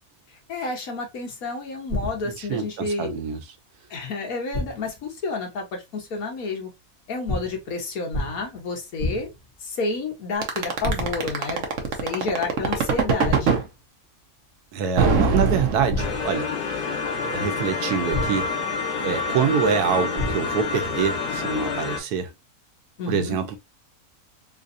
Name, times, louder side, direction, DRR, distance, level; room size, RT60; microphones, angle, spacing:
voice 1, 0.5-3.2 3.9-6.7 7.1-9.3 9.6-11.6 12.0-13.6 23.0-23.4, left 3 dB, 65° left, 1.5 m, -30 dB
sound 1, 1.9-2.5 4.5-5.0 7.3-7.7 8.1-8.6 9.0-9.5 10.8-11.4 13.2-13.7 15.9-16.5 18.1-18.7 20.2-20.7, left 1 dB, 40° left, 1.3 m, -30 dB
voice 2, 2.2-3.4 14.7-18.5 19.0-22.3 23.1-23.6, right 7 dB, 90° right, 1.2 m, -26 dB
sound 2, 10.4-13.6 15.0-16.4, right 5 dB, 60° right, 1.0 m, -21 dB
sound 3, 16.0-22.0, left 4 dB, 90° left, 1.3 m, -28 dB
3.9 x 2.5 x 2.5 m
omnidirectional pair, 1.6 m